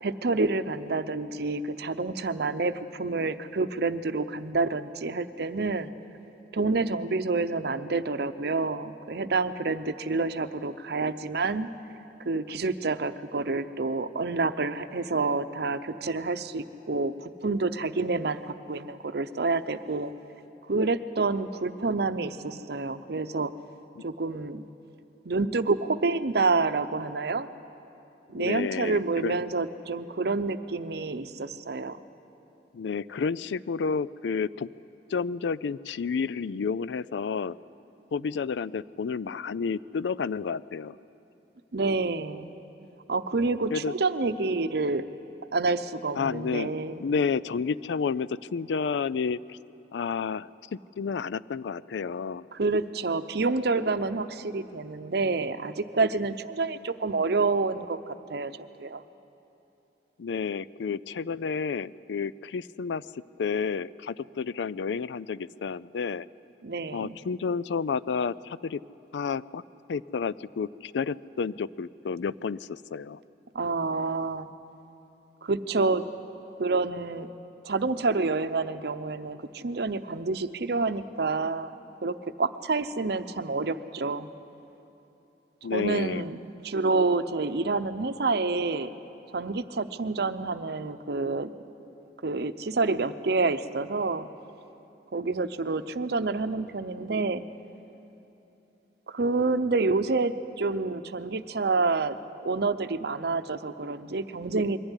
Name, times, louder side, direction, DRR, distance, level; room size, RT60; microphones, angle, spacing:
voice 1, 0.0-5.9 6.5-11.7 12.3-20.1 20.7-23.5 24.0-24.6 25.2-27.5 28.3-32.0 41.7-42.5 43.1-45.1 45.5-47.0 52.5-58.0 58.3-59.0 66.6-67.2 73.5-74.5 75.4-76.0 76.6-77.3 77.6-81.7 82.0-84.3 85.7-86.4 86.6-88.9 89.3-91.5 92.2-94.3 95.1-97.4 99.1-104.8, right 3 dB, 65° right, 11 dB, 0.7 m, -28 dB
voice 2, 28.4-29.4 32.7-34.7 35.1-37.6 38.1-41.0 43.7-43.9 46.1-46.7 47.0-49.6 49.9-52.5 60.2-63.0 63.4-66.3 66.9-68.8 69.1-69.6 69.9-73.2 85.6-86.2, left 5 dB, 85° left, 18 dB, 0.4 m, -30 dB
22.5 x 15.0 x 9.9 m, 3.0 s
head